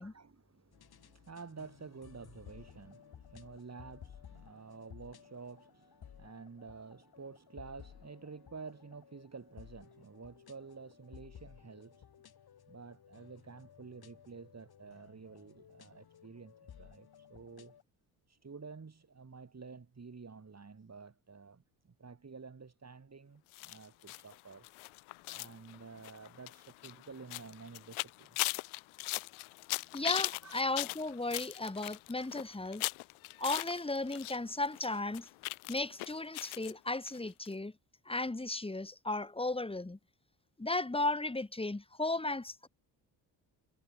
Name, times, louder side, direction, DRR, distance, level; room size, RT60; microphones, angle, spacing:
voice 1, 0.0-12.1 12.7-17.8 18.3-24.7 25.3-28.5 30.4-30.6, right 5 dB, 35° right, 4.9 m, -50 dB
sound 1, 0.7-17.8, left 9 dB, 50° left, 2.2 m, -57 dB
sound 2, 23.5-34.4 34.6-36.7 37.1-37.2 37.5-37.6, left 24 dB, 85° left, 1.2 m, -39 dB
voice 2, 29.9-32.8 33.4-35.3 35.7-37.7 38.1-40.0 40.6-42.7, left 2 dB, 10° left, 1.8 m, -35 dB
supercardioid pair, 60°, 47 cm